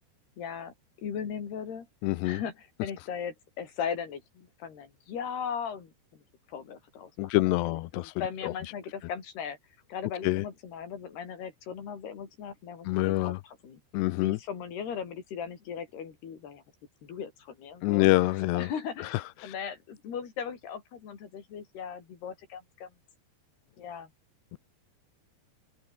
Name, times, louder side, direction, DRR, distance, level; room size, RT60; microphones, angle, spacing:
voice 1, 0.4-0.7 1.0-1.9 2.2-6.2 6.5-7.3 7.7-9.6 9.9-16.6 17.0-18.1 18.6-23.0 23.8-24.1, left 7 dB, 65° left, 5.8 m, -38 dB
voice 2, 2.0-2.4 7.2-8.1 8.4-8.5 10.2-10.4 12.9-13.4 13.9-14.4 17.8-18.7 19.0-19.5 24.5-24.6, left 20 dB, 80° left, 2.8 m, -26 dB
open air
omnidirectional pair, 5.1 m